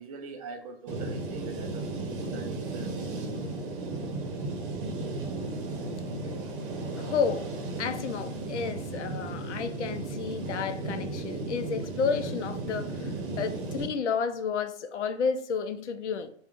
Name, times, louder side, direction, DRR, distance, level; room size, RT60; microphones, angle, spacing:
voice 1, 0.0-1.9 2.3-3.0, right 5 dB, 35° right, 0.4 m, -42 dB
sound 1, 0.9-13.9, right 2 dB, 50° right, 0.8 m, -35 dB
voice 2, 7.0-7.5 7.8-16.3, left 6 dB, 85° left, 0.5 m, -31 dB
3.5 x 2.2 x 2.5 m
hypercardioid pair, 130°, 34 cm